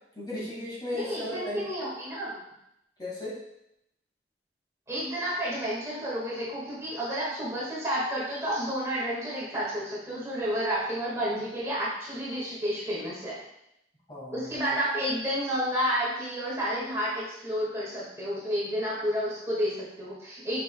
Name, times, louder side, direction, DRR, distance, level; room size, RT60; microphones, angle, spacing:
voice 1, 0.2-1.6 3.0-3.4 14.1-14.8, left 1 dB, 25° left, -6 dB, 2.0 m, -36 dB
voice 2, 0.9-2.4 4.9-13.4 14.3-20.6, equal, 15° right, -7 dB, 1.8 m, -30 dB
7.4 x 5.8 x 2.3 m, 0.80 s
head